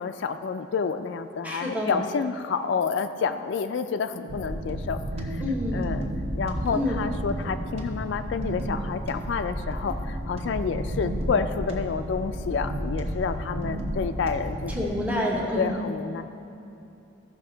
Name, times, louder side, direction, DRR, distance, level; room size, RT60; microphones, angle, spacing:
voice 1, 0.0-5.4 5.7-6.1 6.4-14.9 15.6-16.2, left 5 dB, 65° left, 9 dB, 0.3 m, -29 dB
voice 2, 1.4-2.0 5.4-5.9 6.7-7.0 14.7-15.8, left 1 dB, 10° right, -3 dB, 0.9 m, -28 dB
sound 1, 1.5-1.6 4.5-5.2 5.5-6.5 6.8-7.8 8.1-9.1 9.6-10.4 10.7-11.7 12.0-13.0 13.3-14.3 14.9-15.3, right 3 dB, 35° right, 1.0 m, -41 dB
sound 2, 4.3-14.8, equal, 75° right, 1.2 m, -32 dB
14.5 x 5.8 x 3.9 m, 2.8 s
head